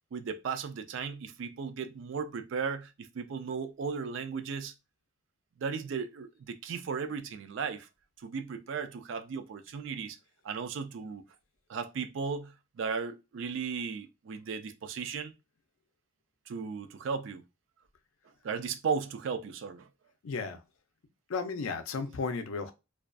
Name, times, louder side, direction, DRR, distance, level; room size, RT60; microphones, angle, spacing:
voice 1, 0.1-4.7 5.6-7.9 8.2-10.2 10.4-11.2 11.7-15.3 16.5-17.4 18.4-19.9, right 5 dB, 65° right, 0.3 m, -36 dB
voice 2, 20.2-20.6 21.3-22.7, left 4 dB, 90° left, 0.5 m, -34 dB
2.4 x 2.3 x 2.2 m
head